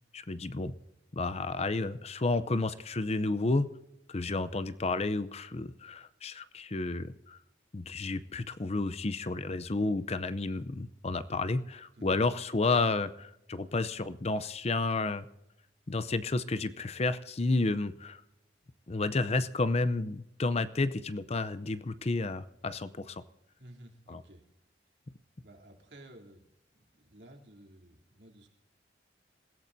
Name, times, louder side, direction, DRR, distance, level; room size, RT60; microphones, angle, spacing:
voice 1, 0.1-0.7 1.1-3.7 4.1-7.4 7.7-15.2 15.9-18.2 18.9-23.2 24.1-24.2, left 3 dB, 35° left, 13 dB, 0.6 m, -31 dB
voice 2, 23.6-24.4 25.4-26.4 26.7-28.5, right 1 dB, 70° right, 0 dB, 3.2 m, -53 dB
27.5 x 16.5 x 2.7 m, 0.86 s
head